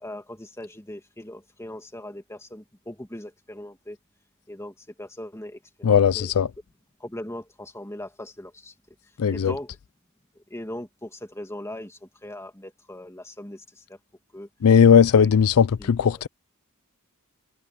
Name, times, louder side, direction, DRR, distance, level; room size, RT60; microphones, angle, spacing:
voice 1, 0.0-4.0 4.5-6.3 7.0-8.7 9.3-9.7 10.4-14.0 14.3-14.5 15.1-15.3 15.8-16.2, left 1 dB, 15° left, 2.2 m, -39 dB
voice 2, 5.8-6.5 9.2-9.5 14.6-16.3, left 7 dB, 85° left, 0.4 m, -17 dB
head